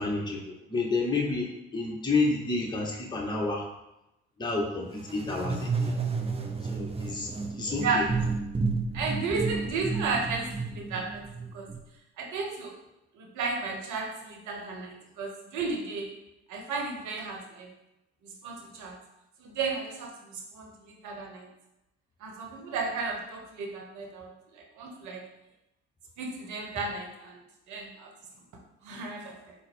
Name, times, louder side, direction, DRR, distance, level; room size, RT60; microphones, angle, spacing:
voice 1, 0.0-3.6 4.4-5.9 6.7-7.3 7.6-8.0, left 3 dB, 15° left, -2 dB, 0.9 m, -30 dB
sound 1, 5.0-11.8, right 4 dB, 20° right, 0.6 m, -31 dB
voice 2, 8.9-11.2 11.5-11.7 12.2-12.7 13.1-16.1 16.5-17.7 18.4-18.9 19.4-21.5 22.2-25.2 26.2-27.4 27.7-28.1 28.8-29.5, right 4 dB, 60° right, 1 dB, 0.9 m, -34 dB
3.9 x 2.1 x 4.2 m, 0.91 s
hypercardioid pair, 55°, 33 cm